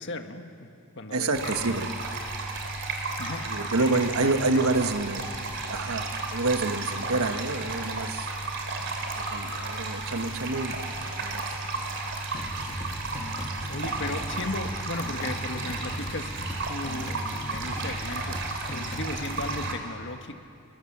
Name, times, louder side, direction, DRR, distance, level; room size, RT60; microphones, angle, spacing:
voice 1, 0.0-1.8 3.2-4.6 13.7-16.3 16.7-18.4 18.7-20.4, left 2 dB, 55° left, 6 dB, 1.6 m, -36 dB
voice 2, 1.1-1.9 3.4-5.3 5.7-8.3 9.3-11.9 17.0-17.1, right 2 dB, 75° right, 7 dB, 1.4 m, -28 dB
sound 1, 1.3-19.7, right 3 dB, 55° right, 3.4 m, -33 dB
sound 2, 12.3-19.7, left 1 dB, 30° left, 1.4 m, -38 dB
29.5 x 22.5 x 7.4 m, 2.5 s
head